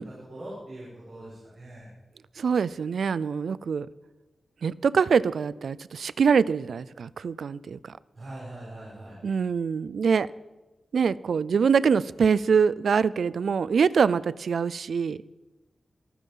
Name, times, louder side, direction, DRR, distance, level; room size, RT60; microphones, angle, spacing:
voice 1, 0.0-1.9 8.1-9.2, right 1 dB, 50° right, -7 dB, 6.8 m, -42 dB
voice 2, 2.4-3.9 4.6-8.0 9.2-10.3 10.9-15.2, right 6 dB, 85° right, 20 dB, 0.4 m, -24 dB
27.0 x 9.4 x 5.5 m, 1.1 s
wide cardioid pair, 110°, 0 cm